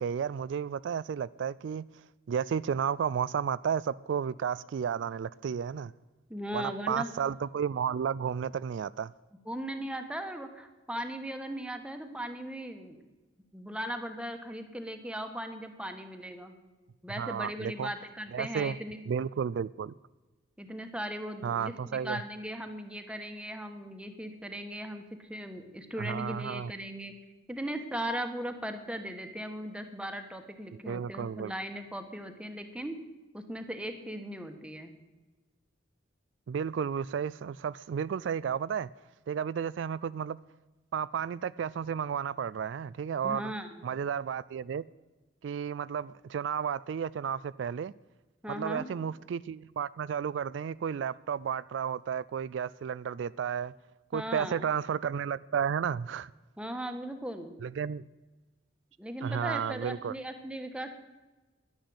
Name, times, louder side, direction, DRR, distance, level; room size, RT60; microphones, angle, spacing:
voice 1, 0.0-1.9 2.3-5.9 6.5-9.1 17.2-17.9 18.3-18.8 19.1-19.9 21.4-22.2 26.0-26.7 30.9-31.5 36.5-38.9 39.3-40.4 40.9-43.5 43.8-44.8 45.4-47.9 48.5-53.7 54.1-56.3 57.6-58.1 59.2-60.1, right 7 dB, 70° right, 0.3 m, -32 dB
voice 2, 6.3-7.1 9.5-13.0 13.5-16.6 17.0-19.0 20.6-27.1 27.5-33.0 33.3-34.9 43.2-43.9 48.4-48.9 54.1-54.7 56.6-57.6 59.0-60.9, equal, 5° right, 1.3 m, -38 dB
11.5 x 10.5 x 7.9 m
head